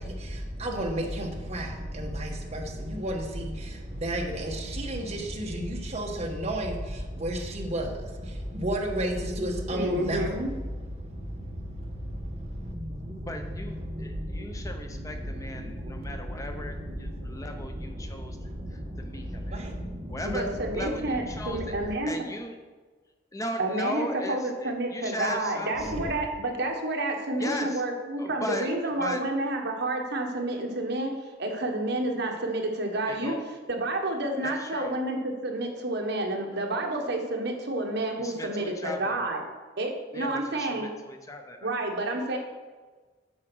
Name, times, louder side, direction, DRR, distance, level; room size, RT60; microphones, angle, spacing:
voice 1, 0.0-21.9 25.8-26.2, right 1 dB, 35° right, 1 dB, 1.3 m, -33 dB
voice 2, 9.7-10.5 15.6-15.7 20.2-22.1 23.6-33.4 33.7-39.4 39.8-40.9 41.6-42.4, right 2 dB, 65° right, 2 dB, 1.3 m, -30 dB
voice 3, 13.3-18.4 18.7-19.6 20.1-22.5 23.3-25.9 27.4-27.8 28.2-28.7 29.0-29.2 33.1-33.5 34.4-34.9 38.2-39.2 40.1-40.3 40.6-41.7, left 1 dB, 20° left, 5 dB, 0.6 m, -37 dB
8.5 x 4.9 x 6.2 m, 1.4 s
head